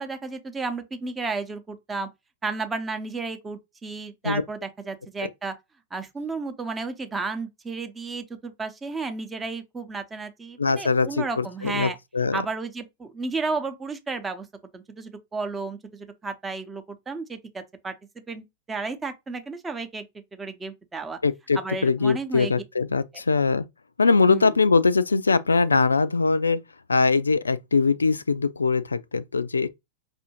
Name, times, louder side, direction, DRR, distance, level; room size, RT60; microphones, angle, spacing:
voice 1, 0.0-2.1 2.4-5.5 5.9-12.0 12.3-14.5 14.7-17.9 18.3-21.2 21.5-22.5 24.3-24.6, right 4 dB, 15° right, 0.7 m, -33 dB
voice 2, 10.6-12.4 21.2-23.6 24.0-26.6 26.9-29.7, left 4 dB, 80° left, 0.3 m, -22 dB
5.3 x 2.6 x 2.9 m
figure-of-eight pair, 95°, 0 cm